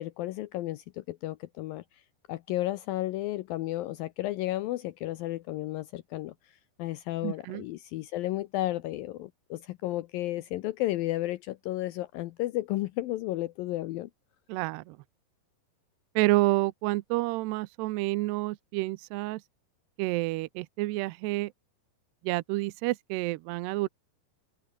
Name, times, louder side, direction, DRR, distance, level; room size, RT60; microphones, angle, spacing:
voice 1, 0.0-1.8 2.3-6.3 6.8-14.1, left 16 dB, 80° left, 2.1 m, -33 dB
voice 2, 7.2-7.7 14.5-15.0 16.2-19.4 20.0-21.5 22.2-23.9, right 20 dB, 80° right, 2.8 m, -29 dB
omnidirectional pair, 4.8 m